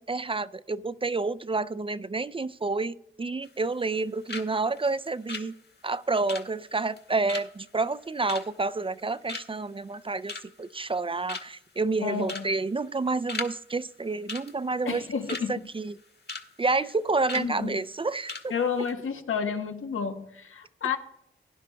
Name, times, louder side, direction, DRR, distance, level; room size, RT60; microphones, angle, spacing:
voice 1, 0.1-5.6 5.8-15.0 15.5-16.0 16.6-18.5, right 3 dB, 25° right, 0.4 m, -29 dB
sound 1, 3.4-4.0 4.3-4.5 4.8-9.0 9.3-9.7 10.1-10.7 11.0-11.1 11.3-11.7 12.2-12.5 12.8-13.5 13.8-13.9 14.3-15.5 15.9-16.5 16.7-16.9 17.3-17.5 17.9-18.0 18.3-18.5 18.7-18.9, left 3 dB, 55° left, 1.6 m, -38 dB
voice 2, 12.0-12.4 14.9-15.6 17.3-17.8 18.5-21.0, left 6 dB, 85° left, 1.1 m, -30 dB
17.0 x 10.5 x 2.2 m
cardioid pair, 50°, 21 cm